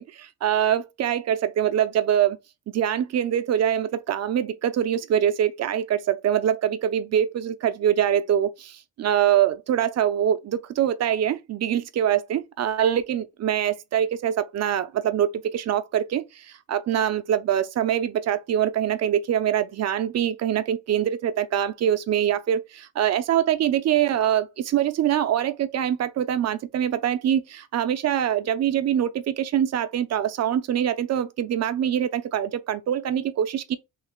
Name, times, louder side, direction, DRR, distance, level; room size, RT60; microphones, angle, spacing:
voice 1, 0.0-2.4 2.7-33.8, right 10 dB, 45° right, 0.5 m, -24 dB
3.2 x 2.8 x 3.5 m
cardioid pair, 120°, 37 cm